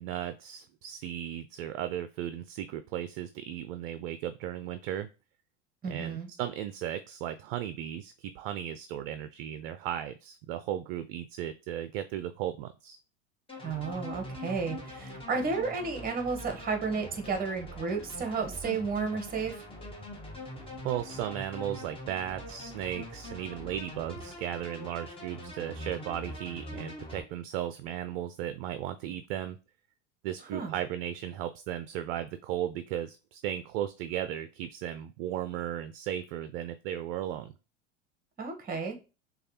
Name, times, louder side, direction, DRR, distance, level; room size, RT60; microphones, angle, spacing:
voice 1, 0.0-5.1 5.9-13.0 20.8-29.6 30.2-37.5, right 11 dB, 55° right, 10 dB, 0.4 m, -36 dB
voice 2, 5.8-6.3 13.6-19.6 30.5-30.7 38.4-39.0, right 4 dB, 25° right, 5 dB, 1.1 m, -32 dB
sound 1, 13.5-27.2, left 1 dB, 15° left, 1.3 m, -43 dB
6.3 x 2.4 x 2.8 m, 0.32 s
hypercardioid pair, 90°, 37 cm